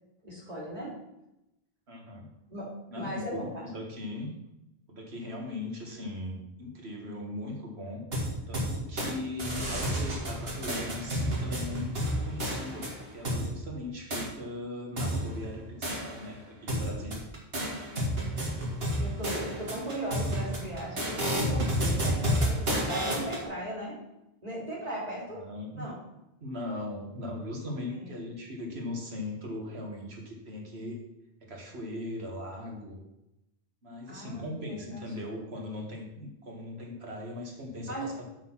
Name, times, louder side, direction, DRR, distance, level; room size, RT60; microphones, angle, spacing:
voice 1, 0.2-1.0 2.5-2.7 3.0-3.7 19.0-24.0 24.4-25.4 25.7-26.0 27.9-28.1 34.1-35.0 37.9-38.1, right 1 dB, 40° right, -5 dB, 3.5 m, -37 dB
voice 2, 1.9-2.3 2.9-4.3 4.9-8.0 8.5-17.2 25.3-25.8 26.4-31.0 31.4-33.0 33.8-38.2, left 1 dB, 85° right, 0 dB, 2.1 m, -39 dB
sound 1, 8.1-9.1 9.4-13.5 14.1-14.3 15.0-16.4 16.7-23.4, equal, 70° right, 2.2 m, -31 dB
7.3 x 6.4 x 5.8 m, 0.89 s
omnidirectional pair, 1.1 m